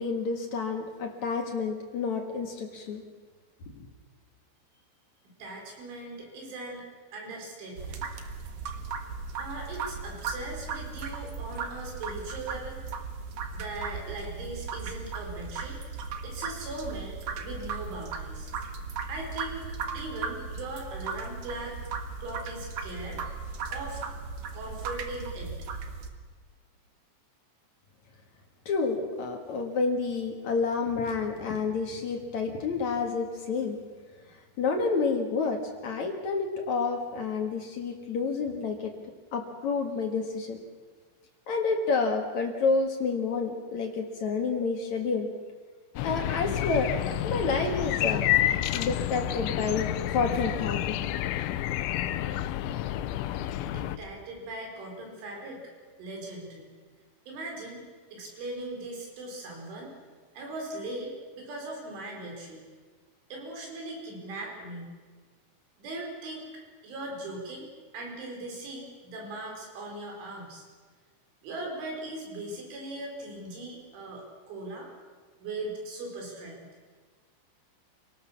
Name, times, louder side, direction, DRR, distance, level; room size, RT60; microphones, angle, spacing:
voice 1, 0.0-3.0 3.8-3.9 28.7-33.8 34.3-38.9 39.3-40.6 41.5-45.3 46.0-51.0, left 4 dB, 55° left, 3 dB, 2.3 m, -29 dB
voice 2, 5.4-6.8 7.1-8.1 9.4-12.8 13.5-15.8 16.2-18.5 19.1-21.8 22.2-23.3 23.7-24.0 24.5-25.6 53.7-55.7 56.0-56.7 57.3-57.8 58.1-59.9 60.4-62.6 63.3-65.0 65.8-66.5 66.8-70.7 71.4-74.9 75.4-76.7, right 2 dB, 75° right, 0 dB, 7.2 m, -39 dB
sound 1, 7.8-26.1, right 5 dB, 60° right, 2.2 m, -37 dB
sound 2, 46.0-54.0, left 13 dB, 80° left, 3.1 m, -29 dB
27.5 x 18.5 x 7.3 m, 1.5 s
omnidirectional pair, 5.5 m